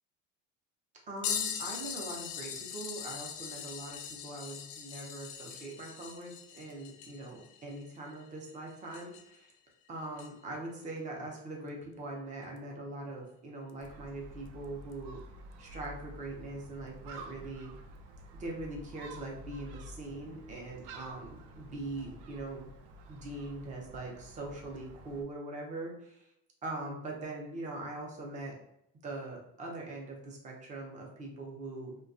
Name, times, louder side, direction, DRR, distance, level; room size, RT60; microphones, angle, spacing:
voice 1, 1.1-9.5 9.9-15.2 15.6-17.7 18.4-22.7 23.1-26.3 26.6-28.6 29.0-32.0, right 2 dB, 20° right, 0 dB, 0.5 m, -42 dB
sound 1, 1.2-9.4 10.2-10.3 12.6-12.7 13.7-13.9 14.9-15.0, left 8 dB, 85° left, 0.5 m, -40 dB
Gull seagull, 13.8-25.2, right 2 dB, 75° right, 0.5 m, -50 dB
2.7 x 2.2 x 2.5 m, 0.77 s
cardioid pair, 155°, 36 cm